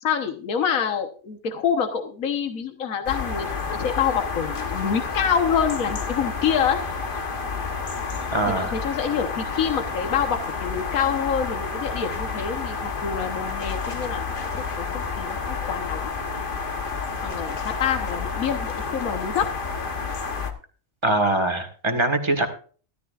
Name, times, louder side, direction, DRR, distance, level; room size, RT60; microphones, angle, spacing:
voice 1, 0.0-6.8 8.5-16.1 17.2-19.5, left 7 dB, 75° left, 6 dB, 1.6 m, -26 dB
sound 1, 3.1-20.5, left 4 dB, 40° left, 1.2 m, -30 dB
voice 2, 8.3-8.7 21.0-22.5, right 2 dB, 20° right, 6 dB, 1.6 m, -22 dB
14.0 x 13.0 x 2.5 m, 0.40 s
omnidirectional pair, 1.5 m